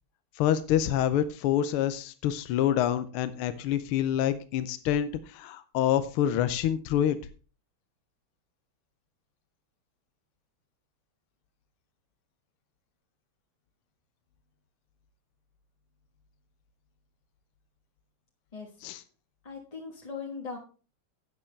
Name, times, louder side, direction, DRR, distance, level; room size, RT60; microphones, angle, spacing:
voice 1, 0.4-7.2 18.8-19.0, left 10 dB, 80° left, 12 dB, 1.6 m, -27 dB
voice 2, 19.4-20.6, left 5 dB, 20° left, 1 dB, 1.1 m, -39 dB
11.5 x 8.8 x 3.3 m, 0.36 s
omnidirectional pair, 2.4 m